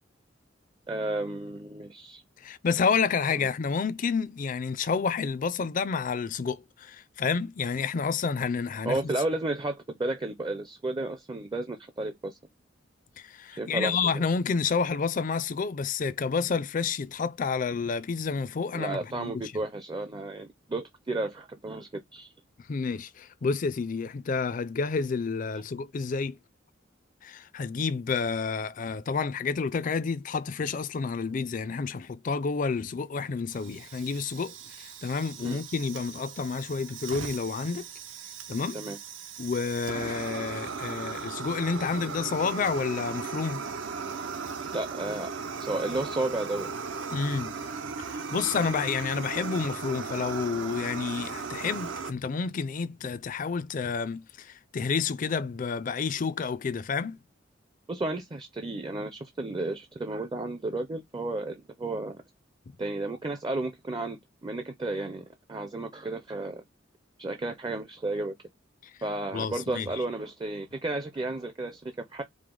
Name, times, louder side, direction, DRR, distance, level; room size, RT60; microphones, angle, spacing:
voice 1, 0.9-2.2 3.4-3.5 8.8-12.4 13.6-14.0 18.7-22.3 35.4-35.6 38.7-39.0 44.7-45.3 45.6-46.7 57.9-62.2 62.8-66.6 67.2-68.3 69.0-72.2, right 2 dB, 25° right, 0.5 m, -33 dB
voice 2, 2.4-9.1 13.2-19.3 22.7-26.4 27.2-37.9 38.5-38.8 39.4-43.6 47.1-47.5 48.1-57.2 69.3-69.9, left 5 dB, 45° left, 0.4 m, -29 dB
Fire, 33.5-52.1, right 5 dB, 75° right, 0.6 m, -37 dB
4.9 x 2.0 x 3.7 m
head